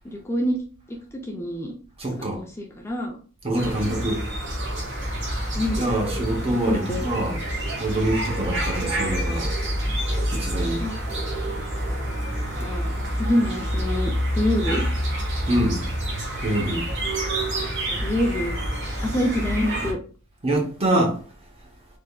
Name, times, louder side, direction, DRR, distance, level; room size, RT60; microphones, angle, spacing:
voice 1, 0.0-0.6 0.9-1.7 2.3-3.1 5.6-5.9 6.5-7.0 10.8-10.9 12.6-12.9 13.2-14.9 17.9-18.6 19.0-20.0, left 1 dB, 10° left, 0.4 m, -26 dB
voice 2, 2.0-2.4 3.4-4.2 5.8-7.4 7.8-9.5 10.3-10.8 15.5-15.8 16.4-16.9 20.4-21.2, right 1 dB, 30° right, 0.8 m, -25 dB
sound 1, 3.6-19.9, equal, 55° right, 1.1 m, -27 dB
3.5 x 3.3 x 2.2 m
head